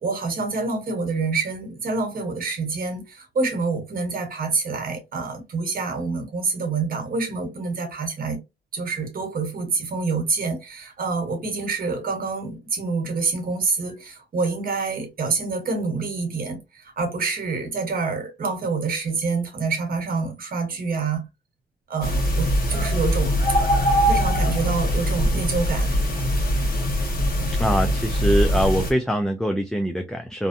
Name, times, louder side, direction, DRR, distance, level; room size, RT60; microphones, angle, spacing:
voice 1, 0.0-8.4 8.7-21.3 21.9-23.4 24.1-26.0, right 4 dB, 55° right, 1.1 m, -27 dB
sound 1, 22.0-28.9, equal, 55° left, 1.1 m, -22 dB
voice 2, 27.6-30.5, equal, 5° left, 0.4 m, -23 dB
2.6 x 2.2 x 2.6 m
cardioid pair, 80°, 18 cm